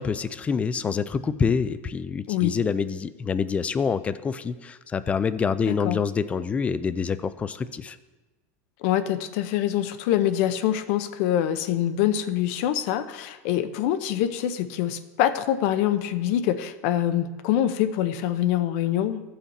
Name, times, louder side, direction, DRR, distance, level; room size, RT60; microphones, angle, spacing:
voice 1, 0.0-8.0, left 6 dB, 15° left, 14 dB, 0.4 m, -26 dB
voice 2, 5.7-6.0 8.8-19.2, left 11 dB, 60° left, 11 dB, 0.6 m, -25 dB
15.0 x 5.7 x 4.1 m, 1.2 s
supercardioid pair, 145°, 8 cm